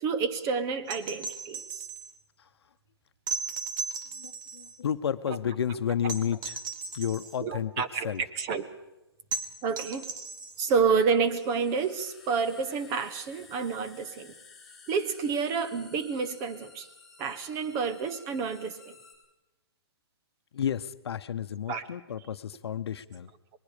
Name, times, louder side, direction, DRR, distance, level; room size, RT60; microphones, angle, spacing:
voice 1, 0.0-1.6 7.4-8.1 8.4-8.6 9.6-10.0 10.6-14.3 14.9-16.8 17.2-18.9 21.7-21.8, right 5 dB, 25° right, 11 dB, 1.0 m, -29 dB
sound 1, 0.9-2.1 3.3-4.8 6.1-7.4 9.3-10.8 12.6-12.7, right 4 dB, 50° right, 1.9 m, -36 dB
voice 2, 4.2-6.6 6.9-8.2 20.5-23.3, left 8 dB, 70° left, 12 dB, 0.9 m, -31 dB
sound 2, 8.7-8.8 10.8-19.2, left 4 dB, ahead, 6.7 m, -54 dB
26.5 x 20.5 x 5.1 m, 0.97 s
hypercardioid pair, 155°, 14 cm